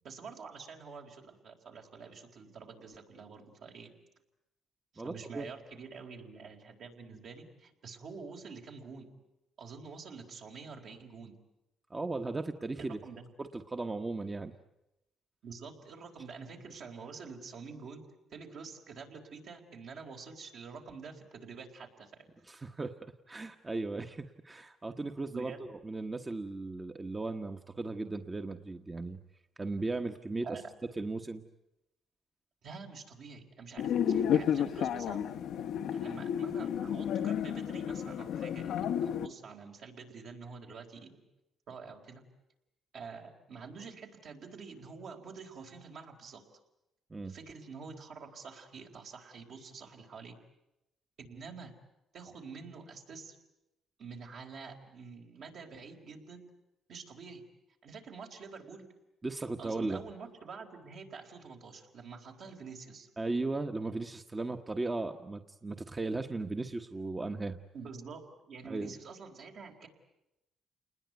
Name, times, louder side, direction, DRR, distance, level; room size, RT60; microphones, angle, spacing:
voice 1, 0.0-3.9 4.9-9.1 9.6-11.4 12.8-13.3 15.4-18.0 18.3-22.3 25.3-25.7 30.4-30.6 32.6-35.2 35.9-41.2 41.7-42.2 42.9-46.4 47.2-50.3 51.2-51.7 52.1-53.4 54.0-56.4 56.9-57.4 57.8-58.8 59.6-63.1 67.7-69.9, right 5 dB, 65° right, 2 dB, 4.3 m, -47 dB
voice 2, 5.0-5.5 11.9-13.0 13.4-14.5 22.5-29.2 29.6-30.6 31.0-31.4 47.1-47.3 59.2-60.0 63.2-67.6 68.6-68.9, right 3 dB, 25° right, 6 dB, 1.2 m, -36 dB
sound 1, 33.8-39.3, left 9 dB, 80° left, 1.0 m, -31 dB
29.0 x 20.5 x 9.4 m, 0.90 s
cardioid pair, 90°, 0 cm